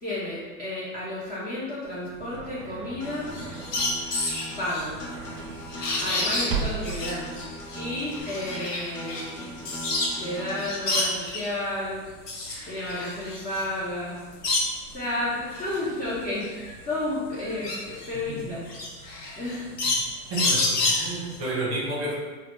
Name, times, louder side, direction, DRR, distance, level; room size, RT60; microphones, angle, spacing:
voice 1, 0.0-3.3 4.6-5.0 6.0-7.4 7.8-9.6 10.2-12.0 12.7-14.2 14.9-18.6 19.4-19.7, left 1 dB, 20° left, -9 dB, 0.6 m, -32 dB
sound 1, 1.8-8.2, right 5 dB, 65° right, 0.5 m, -37 dB
sound 2, 3.0-10.3 10.6-11.6 12.0-15.0 15.4-21.4, left 2 dB, 90° left, 0.7 m, -29 dB
Acoustic guitar, 3.0-11.0, equal, 45° left, 0.9 m, -40 dB
voice 2, 18.3-18.6 20.3-22.2, right 2 dB, 30° right, -5 dB, 0.8 m, -31 dB
2.1 x 2.1 x 3.0 m, 1.3 s
hypercardioid pair, 95°, 46 cm